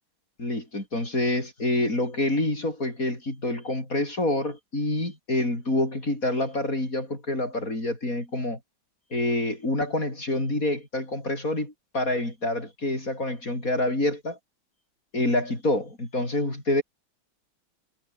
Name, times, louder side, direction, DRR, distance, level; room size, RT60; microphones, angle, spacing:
voice 1, 0.4-8.6 9.1-14.4 15.1-16.8, left 1 dB, 40° left, 7.7 m, -27 dB
omnidirectional pair, 2.3 m